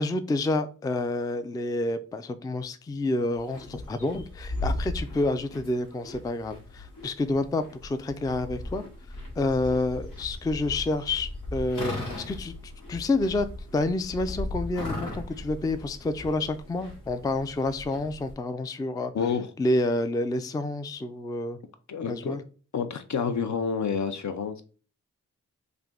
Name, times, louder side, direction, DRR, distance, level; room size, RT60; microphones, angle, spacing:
voice 1, 0.0-8.8 9.4-13.5 13.7-19.1 19.6-21.6 22.1-22.4, left 2 dB, 10° left, 11 dB, 0.3 m, -29 dB
sound 1, 3.3-18.3, left 1 dB, 90° left, 1.4 m, -37 dB
voice 2, 19.1-19.5 21.9-22.4 22.7-24.6, left 6 dB, 60° left, 9 dB, 0.6 m, -29 dB
3.3 x 2.5 x 3.7 m, 0.37 s
cardioid pair, 65°, 32 cm